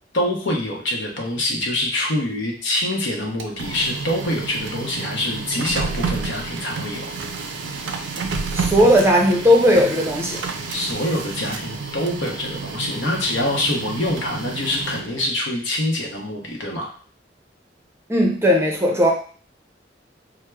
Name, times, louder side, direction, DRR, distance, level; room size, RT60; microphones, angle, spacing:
voice 1, 0.1-7.1 10.7-16.9, left 1 dB, 80° left, 0 dB, 0.8 m, -25 dB
Printer, 3.2-15.3, right 4 dB, 85° right, 0.4 m, -30 dB
voice 2, 8.5-10.4 18.1-19.1, equal, 15° right, 0 dB, 0.5 m, -16 dB
4.4 x 2.0 x 2.3 m, 0.43 s
head